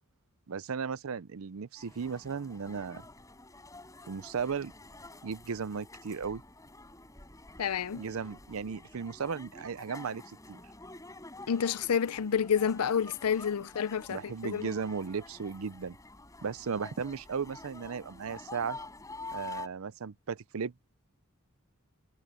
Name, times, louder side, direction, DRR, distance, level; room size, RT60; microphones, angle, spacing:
voice 1, 0.5-3.0 4.1-4.7 5.2-6.4 7.9-10.6 14.1-16.0 16.4-18.8 19.3-20.7, right 6 dB, 65° right, 0.5 m, -36 dB
sound 1, 1.8-19.7, left 2 dB, 15° left, 7.1 m, -48 dB
voice 2, 7.6-8.0 11.5-14.7, left 7 dB, 80° left, 0.5 m, -29 dB
head